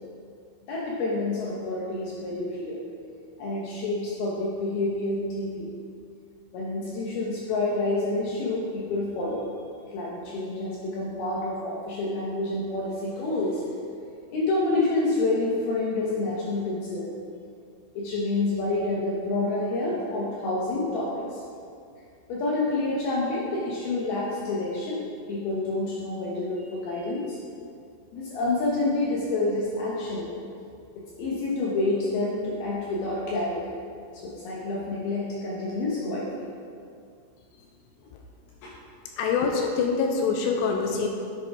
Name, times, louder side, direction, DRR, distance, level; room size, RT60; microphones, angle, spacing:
voice 1, 0.7-2.8 3.4-5.7 6.5-9.5 9.9-13.6 14.3-17.1 17.9-21.4 22.3-27.4 28.1-30.3 31.0-33.8 34.1-36.5, left 2 dB, 70° left, -5 dB, 2.8 m, -28 dB
voice 2, 39.2-41.1, left 5 dB, 85° left, 2 dB, 2.8 m, -25 dB
10.5 x 7.0 x 4.7 m, 2.4 s
omnidirectional pair, 4.9 m